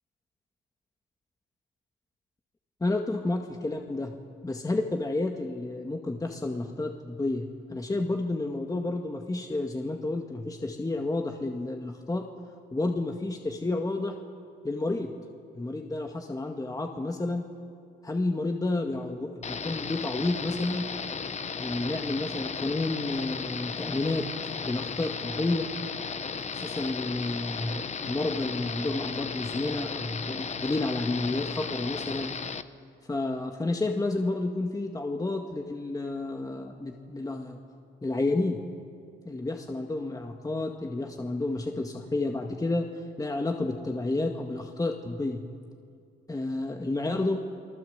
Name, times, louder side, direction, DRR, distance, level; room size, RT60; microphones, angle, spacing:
voice 1, 2.8-4.1 4.4-12.3 12.7-14.2 14.6-15.1 15.6-17.4 18.0-20.9 21.6-24.3 24.6-25.7 26.5-32.3 33.1-37.6 38.0-38.6 39.3-42.9 43.2-45.4 46.3-47.4, left 2 dB, 20° left, 3 dB, 1.9 m, -30 dB
sound 1, 19.4-32.6, left 5 dB, 35° left, 1.0 m, -35 dB
30.0 x 19.5 x 8.1 m, 2.3 s
cardioid pair, 90°, 20 cm